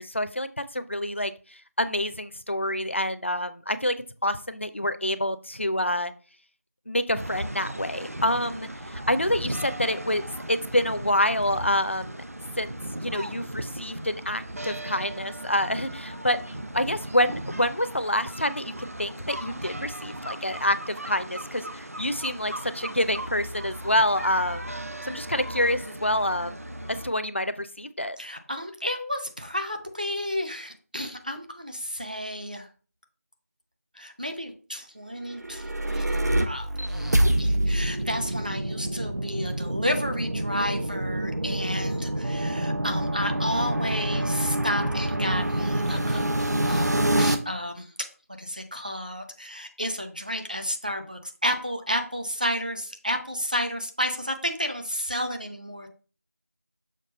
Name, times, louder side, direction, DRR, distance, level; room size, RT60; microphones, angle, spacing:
voice 1, 0.0-4.0 4.2-6.1 6.9-12.2 12.5-12.7 13.0-24.7 25.0-26.6 26.9-28.2, left 1 dB, 45° left, 12 dB, 0.5 m, -27 dB
sound 1, 7.2-27.1, right 1 dB, 60° right, 0.8 m, -37 dB
voice 2, 28.2-32.7 33.9-48.1 48.4-55.9, equal, 30° right, 4 dB, 0.6 m, -32 dB
sound 2, 35.3-47.4, right 1 dB, 85° right, 1.0 m, -26 dB
6.6 x 3.5 x 5.2 m, 0.38 s
figure-of-eight pair, 180°, 9 cm